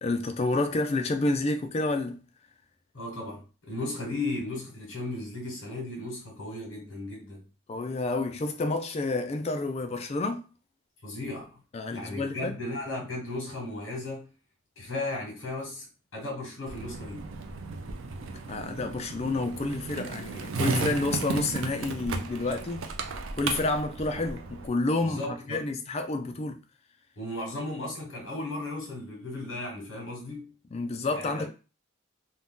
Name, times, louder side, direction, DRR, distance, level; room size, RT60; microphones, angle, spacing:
voice 1, 0.0-2.2 7.7-10.4 11.7-12.5 18.5-22.9 23.3-25.2 25.5-26.6 30.7-31.5, left 2 dB, 30° left, 0.3 m, -29 dB
voice 2, 2.9-7.4 11.0-11.6 11.9-14.3 14.8-15.9 16.1-17.3 25.0-25.6 27.2-30.5 31.1-31.5, left 2 dB, 65° left, 1.1 m, -35 dB
Skateboard, 16.7-24.7, right 4 dB, 75° right, 0.5 m, -34 dB
2.7 x 2.2 x 3.6 m
head